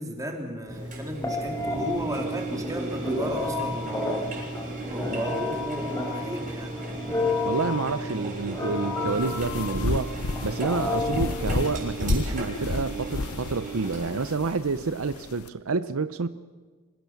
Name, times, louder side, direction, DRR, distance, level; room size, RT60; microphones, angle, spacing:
voice 1, 0.0-4.3 4.9-6.7, equal, 15° right, 2.9 m, -34 dB
Telephone, 0.7-11.9, left 2 dB, 15° left, 4.5 m, -31 dB
Engine, 0.9-14.3, right 3 dB, 35° right, 6.6 m, -37 dB
voice 2, 7.4-16.3, right 4 dB, 75° right, 0.7 m, -29 dB
sound 1, 9.1-15.5, left 3 dB, 85° left, 0.8 m, -32 dB
26.0 x 16.0 x 7.1 m
head